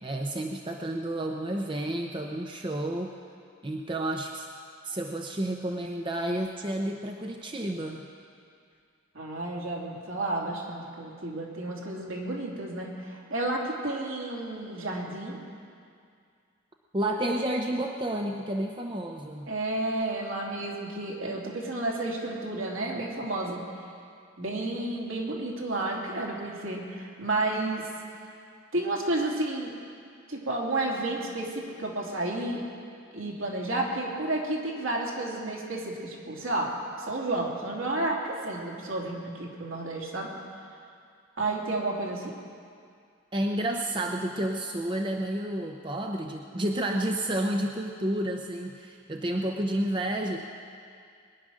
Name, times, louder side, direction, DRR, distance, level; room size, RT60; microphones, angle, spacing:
voice 1, 0.0-3.1 3.6-4.5 4.8-8.1 16.9-19.5 43.3-50.4, right 1 dB, 25° right, 2 dB, 0.7 m, -30 dB
voice 2, 9.1-15.4 19.5-23.6 24.4-27.9 28.7-29.8 30.3-32.6 33.1-36.7 37.0-40.3 41.4-42.4, right 2 dB, 70° right, -2 dB, 2.8 m, -31 dB
22.0 x 10.5 x 6.4 m, 2.3 s
head